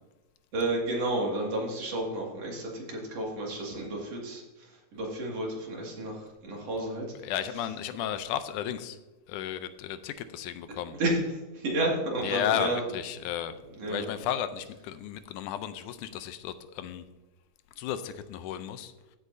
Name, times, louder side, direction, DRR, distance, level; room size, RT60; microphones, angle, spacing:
voice 1, 0.5-4.4 4.9-7.0 11.0-11.2 11.5-12.8 13.7-14.1, right 2 dB, 55° right, -2 dB, 3.1 m, -31 dB
voice 2, 7.2-9.0 9.3-10.9 12.2-13.5 13.9-17.0 17.8-18.9, left 10 dB, 85° left, 11 dB, 2.1 m, -33 dB
15.0 x 8.4 x 2.7 m, 1.1 s
omnidirectional pair, 3.6 m